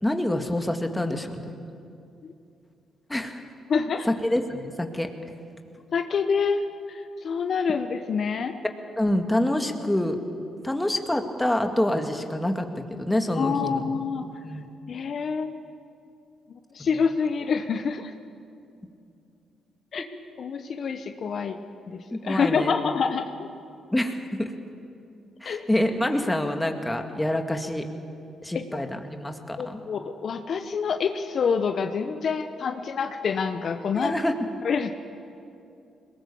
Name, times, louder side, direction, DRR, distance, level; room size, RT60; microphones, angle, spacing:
voice 1, 0.0-1.5 3.1-3.4 4.1-5.1 9.0-10.2 10.6-13.8 14.4-14.7 16.8-16.9 22.1-22.7 23.9-24.5 25.4-27.8 28.4-29.8 33.9-34.3, left 1 dB, 10° left, 5 dB, 2.1 m, -26 dB
voice 2, 3.7-4.1 5.9-6.6 6.9-8.5 13.4-14.3 14.9-15.6 16.7-18.1 19.9-20.1 20.4-21.6 21.9-23.5 25.4-25.6 28.5-28.6 29.6-34.1 34.6-34.9, left 5 dB, 60° left, 8 dB, 1.0 m, -27 dB
21.5 x 19.0 x 7.2 m, 2.6 s
supercardioid pair, 70°, 0 cm